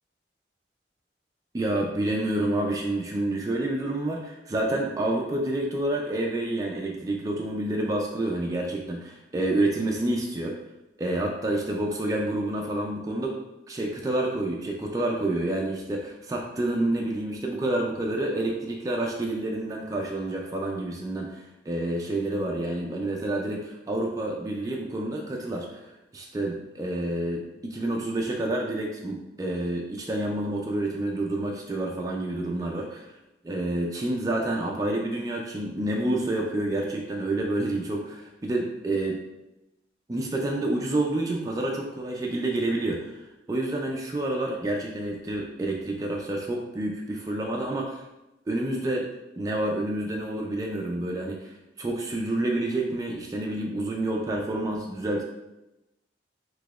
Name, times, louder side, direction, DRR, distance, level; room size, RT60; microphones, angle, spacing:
voice 1, 1.5-10.6 11.0-13.4 13.7-25.8 26.1-33.0 33.4-39.2 40.1-43.2 43.5-48.0 48.5-49.1 49.4-55.2, right 1 dB, 20° right, -1 dB, 0.3 m, -28 dB
4.0 x 2.8 x 2.3 m, 0.95 s
head